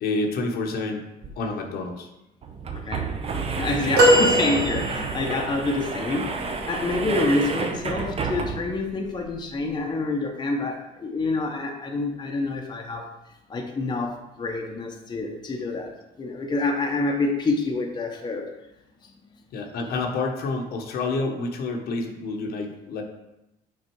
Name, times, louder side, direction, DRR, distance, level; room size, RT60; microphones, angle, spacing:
voice 1, 0.0-1.1 1.4-2.1 19.5-23.0, left 3 dB, 65° left, 2 dB, 1.1 m, -28 dB
sound 1, 1.2-1.3 1.6-1.7 2.4-8.8, right 4 dB, 35° right, 0.7 m, -30 dB
voice 2, 2.7-13.1 13.5-18.5, left 3 dB, 25° left, 1 dB, 0.9 m, -27 dB
sound 2, 4.0-5.4 7.8-8.0 9.3-9.4, right 1 dB, 65° right, 1.8 m, -20 dB
6.3 x 4.0 x 4.6 m, 0.90 s
cardioid pair, 110°, 17 cm